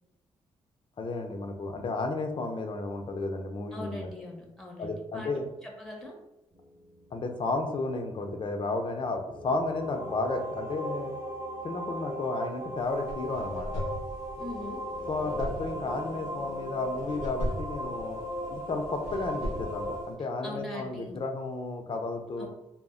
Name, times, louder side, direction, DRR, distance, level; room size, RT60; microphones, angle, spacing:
voice 1, 1.0-4.1 4.8-5.5 7.1-11.1 11.6-13.8 15.1-18.2 18.5-22.5, left 3 dB, 45° left, 5 dB, 0.5 m, -33 dB
voice 2, 3.7-6.1 14.4-14.8 20.4-21.2 22.4-22.5, left 2 dB, ahead, 0 dB, 0.7 m, -41 dB
sound 1, 6.5-20.0, equal, 35° right, 0.9 m, -38 dB
sound 2, 12.8-20.1, equal, 90° right, 0.7 m, -39 dB
2.1 x 2.0 x 3.6 m, 0.93 s
cardioid pair, 65°, 12 cm